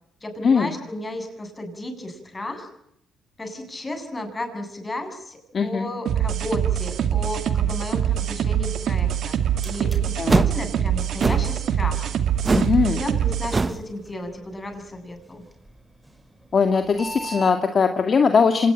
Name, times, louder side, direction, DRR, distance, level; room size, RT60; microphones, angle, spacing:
voice 1, 0.2-2.7 3.4-9.4 9.6-12.1 12.9-15.4, left 1 dB, 20° left, 6 dB, 7.8 m, -33 dB
voice 2, 5.5-5.9 10.2-10.4 12.5-13.0 16.5-18.7, left 5 dB, 45° left, 6 dB, 2.2 m, -20 dB
sound 1, 6.1-13.6, right 9 dB, 70° right, 2.4 m, -24 dB
sound 2, 9.3-17.6, right 2 dB, 10° right, 5.2 m, -44 dB
sound 3, 10.3-10.6 11.2-11.5 12.4-12.8 13.0-13.2 13.5-13.8, right 3 dB, 30° right, 1.0 m, -22 dB
26.0 x 19.5 x 9.0 m, 0.76 s
cardioid pair, 90°, 0 cm